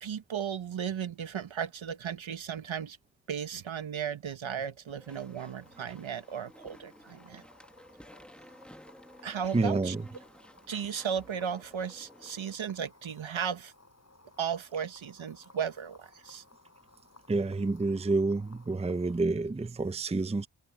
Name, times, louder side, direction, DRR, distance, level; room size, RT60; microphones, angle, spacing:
voice 1, 0.0-3.0 3.3-7.4 9.2-9.9 10.7-13.7 14.4-16.4, right 8 dB, 70° right, 1.3 m, -35 dB
Walk footsteps / Chatter / Squeak, 4.9-12.5, equal, ahead, 1.6 m, -54 dB
sound 1, 5.1-19.2, left 3 dB, 30° left, 7.3 m, -60 dB
voice 2, 9.5-10.0 17.3-20.5, right 3 dB, 15° right, 0.6 m, -29 dB
wide cardioid pair, 80°, 48 cm